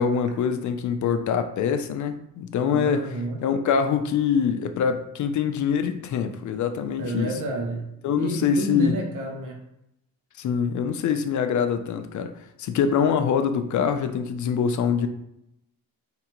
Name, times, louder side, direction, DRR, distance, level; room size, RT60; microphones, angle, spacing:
voice 1, 0.0-3.1 3.4-7.3 8.0-9.0 10.4-12.3 12.6-15.1, left 7 dB, 55° left, 7 dB, 0.6 m, -24 dB
voice 2, 2.7-3.4 7.0-9.6, right 2 dB, 60° right, 1 dB, 1.0 m, -30 dB
4.8 x 3.3 x 3.0 m, 0.81 s
cardioid pair, 130°, 36 cm